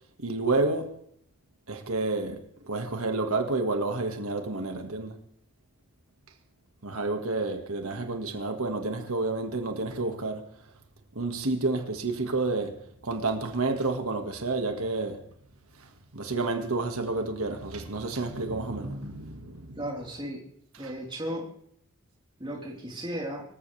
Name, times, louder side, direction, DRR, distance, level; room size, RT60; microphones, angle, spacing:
voice 1, 0.2-1.0 1.7-5.2 6.8-10.5 11.2-15.2 15.8-19.8 20.8-20.9, right 3 dB, 85° right, 1.9 m, -30 dB
voice 2, 19.7-20.4 20.8-21.5 22.4-23.4, equal, 20° right, 4.1 m, -35 dB
25.0 x 14.5 x 3.4 m
head